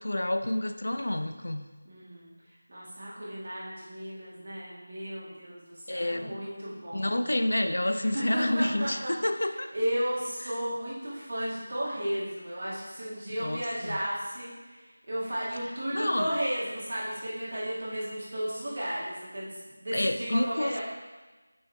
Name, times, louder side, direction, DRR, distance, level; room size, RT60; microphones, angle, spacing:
voice 1, 0.0-1.7 5.9-6.3 6.9-9.7 10.4-10.5 13.4-14.0 15.9-16.3 19.9-20.8, left 1 dB, 70° left, 8 dB, 0.5 m, -29 dB
voice 2, 1.8-2.3 2.7-7.4 8.1-9.1 9.7-20.8, equal, 40° right, -6 dB, 2.2 m, -34 dB
7.1 x 6.2 x 3.6 m, 1.3 s
figure-of-eight pair, 180°, 0 cm